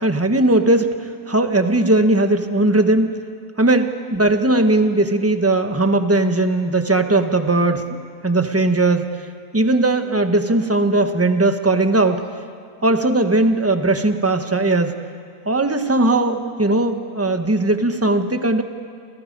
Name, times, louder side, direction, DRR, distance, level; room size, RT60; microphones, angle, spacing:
voice 1, 0.0-3.1 3.6-8.0 8.2-9.2 9.5-12.3 12.8-15.0 15.5-18.6, right 2 dB, 10° right, 7 dB, 0.9 m, -18 dB
30.0 x 27.0 x 5.3 m, 2.2 s
omnidirectional pair, 1.8 m